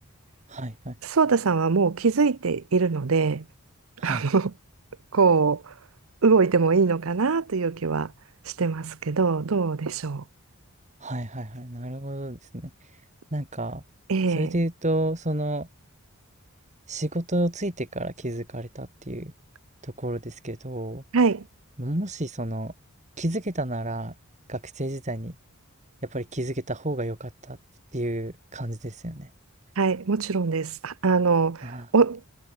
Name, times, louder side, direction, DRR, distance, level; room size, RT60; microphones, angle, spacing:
voice 1, 0.5-0.9 4.0-4.2 11.0-12.7 13.3-13.8 14.3-15.7 16.9-19.3 19.8-21.0 21.8-22.7 23.2-24.1 24.5-25.4 26.1-27.6 27.9-29.3 31.6-31.9, right 1 dB, 30° right, 3.6 m, -30 dB
voice 2, 1.0-3.4 4.0-4.5 5.1-5.7 6.2-8.1 8.6-10.2 14.1-14.6 21.1-21.4 29.8-32.2, right 4 dB, 65° right, 0.7 m, -22 dB
head